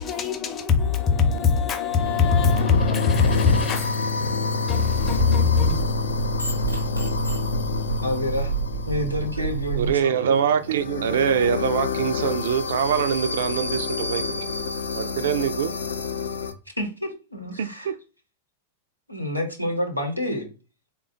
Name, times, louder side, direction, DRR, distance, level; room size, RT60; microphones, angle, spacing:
voice 1, 0.0-5.9, left 5 dB, 25° left, 0.6 m, -22 dB
sound 1, 1.9-16.5, left 4 dB, 65° left, 0.4 m, -28 dB
sound 2, 5.1-9.9, right 6 dB, 90° right, 0.9 m, -29 dB
voice 2, 8.0-8.5 8.9-10.2 16.8-17.9 19.1-20.5, left 1 dB, 90° left, 0.8 m, -28 dB
voice 3, 9.7-14.5 14.9-15.8 17.6-17.9, right 8 dB, 60° right, 0.3 m, -24 dB
3.6 x 2.2 x 3.6 m
figure-of-eight pair, 90°, 0 cm